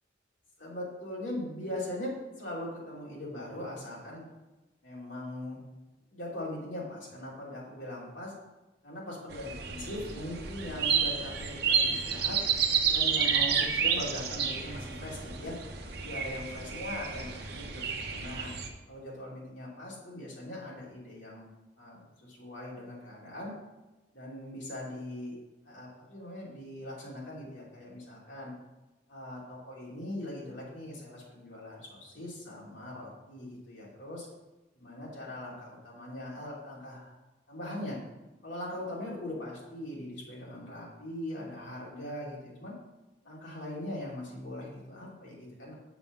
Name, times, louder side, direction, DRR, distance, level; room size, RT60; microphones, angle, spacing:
voice 1, 0.6-4.3 4.8-5.6 6.1-8.3 8.8-12.4 12.9-15.6 16.0-18.5 18.9-21.5 21.8-23.5 24.1-25.3 25.6-28.5 29.1-34.3 34.7-37.1 37.5-38.0 38.4-42.7 43.2-45.7, left 1 dB, 70° left, -5 dB, 3.0 m, -40 dB
sound 1, 9.3-18.7, right 6 dB, 55° right, 1.0 m, -30 dB
6.9 x 5.5 x 7.3 m, 1.1 s
head